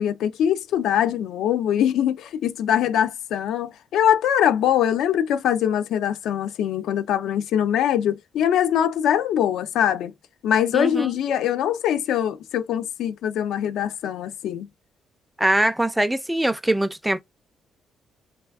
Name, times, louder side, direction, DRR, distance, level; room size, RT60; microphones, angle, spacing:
voice 1, 0.0-10.1 10.4-14.7, left 10 dB, 80° left, 0.4 m, -22 dB
voice 2, 10.7-11.1 15.4-17.2, right 1 dB, 5° right, 0.4 m, -22 dB
3.2 x 2.3 x 2.3 m
cardioid pair, 90°, 0 cm